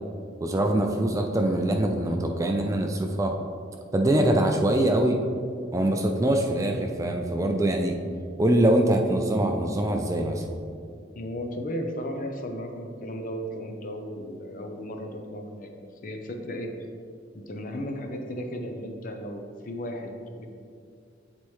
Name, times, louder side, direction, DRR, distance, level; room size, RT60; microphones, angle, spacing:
voice 1, 0.4-3.3 3.9-5.2 5.7-8.0 8.4-10.4, right 1 dB, 15° right, 3 dB, 0.3 m, -23 dB
voice 2, 11.1-15.7 16.0-16.7 17.3-20.5, equal, 45° left, 4 dB, 0.6 m, -35 dB
8.1 x 4.2 x 3.1 m, 2.3 s
head